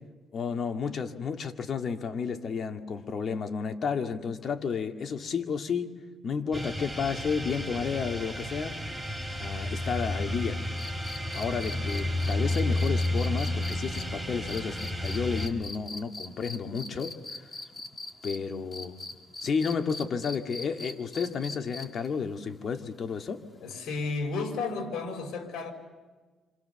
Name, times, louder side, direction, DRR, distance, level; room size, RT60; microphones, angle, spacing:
voice 1, 0.3-6.0 6.2-8.8 9.4-10.7 11.3-17.5 18.2-19.0 19.4-23.4, left 6 dB, 55° left, 2.2 m, -32 dB
sound 1, 6.5-15.5, left 1 dB, ahead, 4.3 m, -31 dB
sound 2, 10.8-18.4 18.7-22.1 23.7-23.8, left 2 dB, 30° left, 2.7 m, -41 dB
voice 2, 23.6-25.7, left 4 dB, 80° left, 5.1 m, -32 dB
29.0 x 27.0 x 7.1 m
cardioid pair, 90°, 0 cm